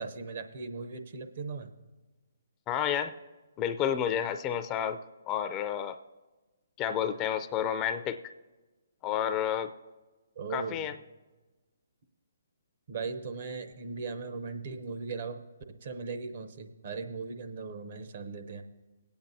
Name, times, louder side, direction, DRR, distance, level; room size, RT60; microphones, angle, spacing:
voice 1, 0.0-1.7 10.4-10.9 12.9-15.4 15.7-18.6, right 4 dB, 55° right, 7 dB, 0.8 m, -38 dB
voice 2, 2.7-3.1 3.6-5.0 5.3-6.0 6.8-8.2 9.0-9.7 10.5-10.9, left 9 dB, 25° left, 10 dB, 0.4 m, -30 dB
21.0 x 8.8 x 2.7 m, 1.2 s
hypercardioid pair, 140°, 0 cm